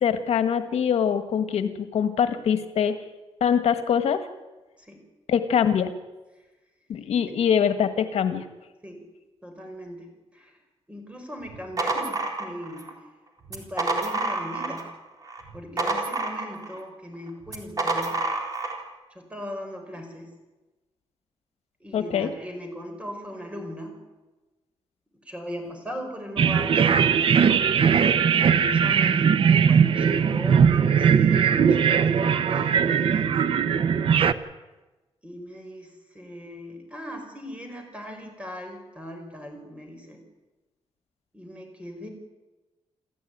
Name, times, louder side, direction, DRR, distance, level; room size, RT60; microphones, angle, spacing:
voice 1, 0.0-3.0 3.4-4.2 5.3-5.9 6.9-8.4 21.9-22.3, left 8 dB, 80° left, 9 dB, 1.6 m, -23 dB
voice 2, 9.4-10.6 10.9-12.9 13.5-14.8 15.5-18.2 19.1-20.3 21.8-24.0 25.3-26.8 28.5-29.3 29.7-33.3 35.2-40.2 41.3-42.1, equal, 10° right, 4 dB, 5.2 m, -39 dB
sound 1, 11.4-12.9 13.4-14.9 15.2-16.8 17.5-18.8, right 2 dB, 35° right, 3.8 m, -28 dB
sound 2, 26.4-34.3, right 7 dB, 55° right, 0.9 m, -20 dB
28.5 x 14.0 x 9.4 m, 1.1 s
wide cardioid pair, 165°, 11 cm